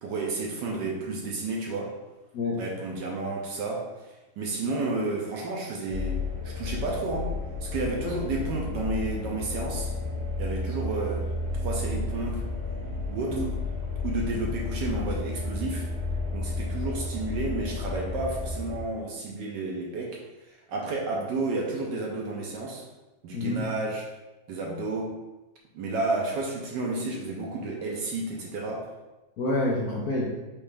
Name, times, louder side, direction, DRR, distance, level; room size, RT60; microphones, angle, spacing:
voice 1, 0.0-1.9 2.6-3.9 4.4-6.2 6.4-7.3 7.6-9.9 10.4-11.2 11.5-12.4 13.1-13.4 14.0-15.9 16.3-20.2 20.7-22.8 23.2-24.1 24.5-25.2 25.7-28.9, right 2 dB, 70° right, -1 dB, 1.2 m, -31 dB
sound 1, 5.9-18.8, left 3 dB, 90° right, 1.9 m, -32 dB
voice 2, 23.3-23.7 29.4-30.3, left 2 dB, 75° left, -4 dB, 0.9 m, -28 dB
4.8 x 3.1 x 3.3 m, 1.1 s
omnidirectional pair, 2.2 m